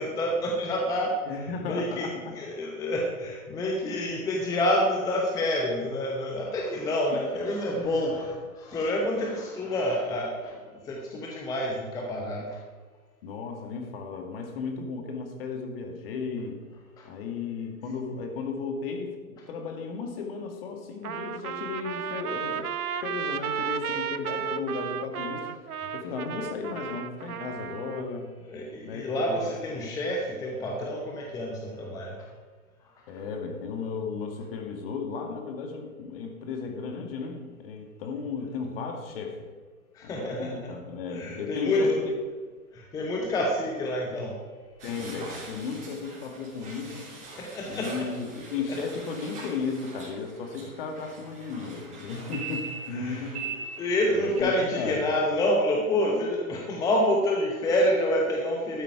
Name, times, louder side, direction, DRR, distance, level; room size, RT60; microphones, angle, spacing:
voice 1, 0.0-12.6 17.0-17.1 23.9-24.0 28.5-32.2 39.9-40.7 41.1-42.1 42.7-44.4 47.4-48.1 48.6-48.8 52.9-53.3 53.8-58.8, left 1 dB, 10° left, 0 dB, 0.9 m, -28 dB
voice 2, 1.3-2.4 3.9-4.0 7.1-7.3 13.2-16.6 17.0-22.7 23.0-25.6 25.9-28.3 28.8-29.9 33.1-39.5 40.0-42.0 44.8-47.1 47.7-53.5 54.1-55.0, left 4 dB, 40° left, 4 dB, 2.0 m, -35 dB
Trumpet, 21.0-28.1, right 8 dB, 80° right, 0.8 m, -33 dB
sound 1, 44.8-54.4, right 4 dB, 15° right, 3.6 m, -42 dB
12.5 x 9.0 x 4.7 m, 1.5 s
hypercardioid pair, 135°, 44 cm